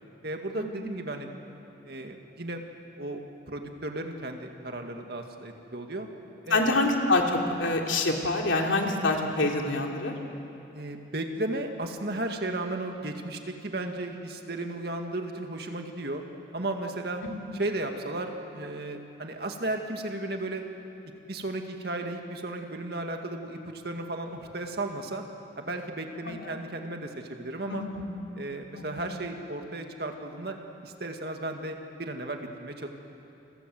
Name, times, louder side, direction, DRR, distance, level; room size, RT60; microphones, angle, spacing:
voice 1, 0.2-1.3 1.8-2.6 3.0-3.2 3.5-6.1 6.4-6.8 10.7-16.2 16.5-17.2 17.5-20.6 21.3-25.2 25.6-27.9 28.4-30.6 30.8-32.9, right 2 dB, 55° right, 4 dB, 2.1 m, -34 dB
voice 2, 6.5-10.1 26.3-26.4 27.7-28.0 28.8-29.1, left 2 dB, 85° left, 1 dB, 3.1 m, -26 dB
29.5 x 22.5 x 7.8 m, 2.9 s
head